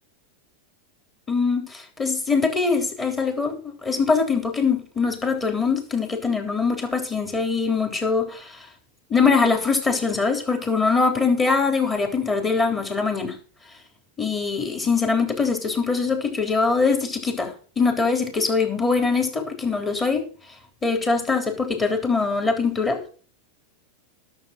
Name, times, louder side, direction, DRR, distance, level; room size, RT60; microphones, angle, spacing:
voice 1, 1.3-8.7 9.1-13.4 14.2-20.2 20.8-23.0, left 4 dB, 15° left, 4 dB, 3.6 m, -23 dB
11.0 x 7.3 x 6.7 m, 0.40 s
supercardioid pair, 130°, 0 cm